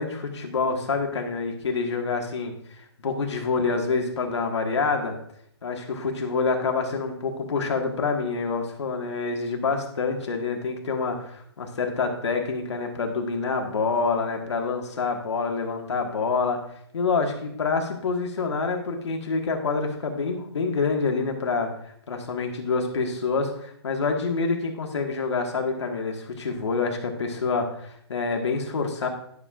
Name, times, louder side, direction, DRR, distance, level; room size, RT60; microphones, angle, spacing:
voice 1, 0.0-2.5 3.0-5.2 5.6-16.6 16.9-21.7 22.1-29.1, left 4 dB, 75° left, 2 dB, 1.8 m, -27 dB
12.0 x 6.7 x 2.5 m, 0.68 s
hypercardioid pair, 180°, 15 cm